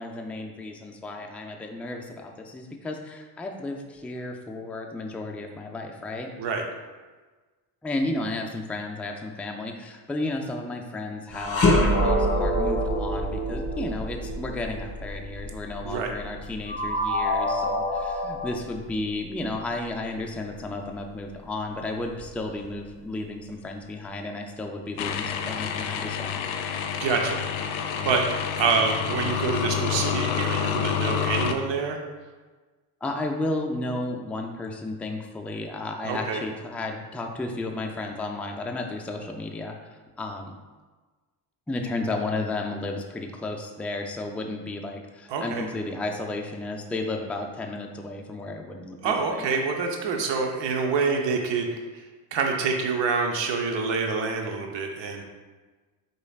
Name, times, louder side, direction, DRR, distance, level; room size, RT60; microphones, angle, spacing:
voice 1, 0.0-6.3 7.8-26.4 33.0-39.8 40.2-40.6 41.7-49.5, left 2 dB, 5° left, 1 dB, 0.4 m, -33 dB
sound 1, 11.3-20.6 21.0-21.2 22.0-22.9, left 1 dB, 30° left, 1.4 m, -28 dB
sound 2, 11.9-14.9 16.6-18.5, equal, 15° right, 1.2 m, -28 dB
sound 3, 25.0-31.5, left 8 dB, 70° left, 0.6 m, -28 dB
voice 2, 27.0-27.4 28.0-28.2 28.6-32.0 36.0-36.4 45.3-45.6 49.0-51.7 52.3-55.2, right 5 dB, 60° right, 3 dB, 0.9 m, -26 dB
4.9 x 4.1 x 2.4 m, 1.3 s
hypercardioid pair, 55°, 49 cm